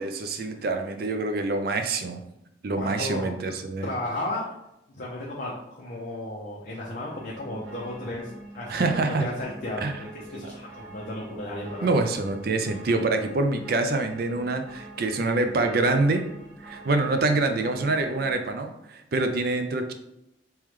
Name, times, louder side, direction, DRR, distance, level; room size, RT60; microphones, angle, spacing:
voice 1, 0.0-2.2 2.6-3.9 8.7-9.3 9.8-9.9 10.4-10.6 11.8-16.2 16.6-19.9, right 3 dB, 55° right, 7 dB, 0.4 m, -26 dB
voice 2, 2.8-3.6 3.8-4.5 5.0-12.0, left 1 dB, 45° left, -5 dB, 0.7 m, -34 dB
sound 1, 7.1-18.3, right 1 dB, 80° right, 1.1 m, -45 dB
3.6 x 3.0 x 3.1 m, 0.85 s
head